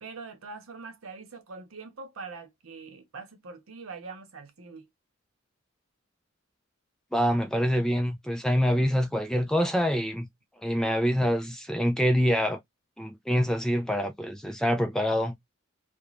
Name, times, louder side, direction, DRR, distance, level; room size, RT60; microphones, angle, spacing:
voice 1, 0.0-4.9, right 4 dB, 85° right, 0.7 m, -43 dB
voice 2, 7.1-10.3 10.6-12.6 13.0-15.3, equal, 5° left, 0.3 m, -25 dB
2.5 x 2.2 x 3.0 m
head